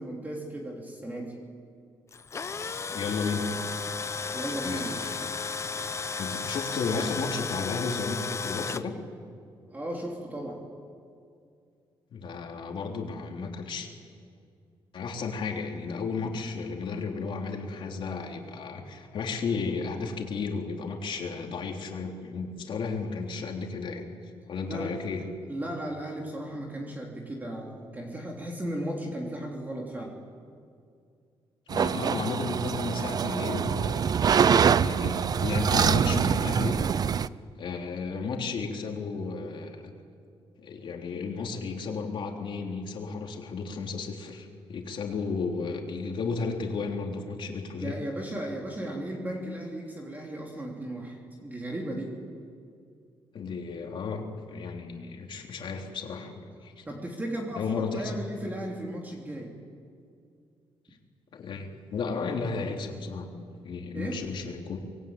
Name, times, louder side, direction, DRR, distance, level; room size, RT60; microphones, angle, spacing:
voice 1, 0.0-1.4 4.3-5.1 9.7-10.6 24.7-25.0 25.5-30.1 47.8-52.2 56.9-59.5 63.9-64.2, right 1 dB, 15° right, -1 dB, 3.3 m, -36 dB
Tools, 2.1-8.8, left 5 dB, 30° left, 0.8 m, -34 dB
voice 2, 2.9-3.4 4.6-5.3 6.2-9.0 12.1-13.9 14.9-24.1 24.5-25.3 31.7-36.8 37.6-39.9 40.6-47.9 53.3-56.8 57.6-58.1 61.3-63.3 63.6-64.8, left 4 dB, 55° left, 1 dB, 3.7 m, -33 dB
sound 1, 31.7-37.3, right 7 dB, 40° right, 0.5 m, -24 dB
25.0 x 22.0 x 9.0 m, 2.3 s
cardioid pair, 135°, 10 cm